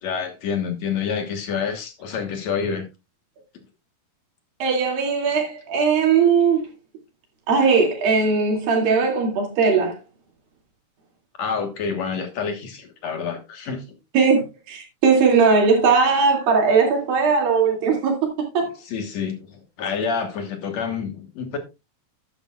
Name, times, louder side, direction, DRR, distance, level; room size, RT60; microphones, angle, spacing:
voice 1, 0.0-2.8 11.4-14.0 18.8-21.6, left 6 dB, 60° left, 2.3 m, -28 dB
voice 2, 4.6-6.6 7.5-10.0 14.1-18.3 18.5-18.7, right 5 dB, 90° right, 4.3 m, -19 dB
12.0 x 9.8 x 2.4 m
omnidirectional pair, 4.0 m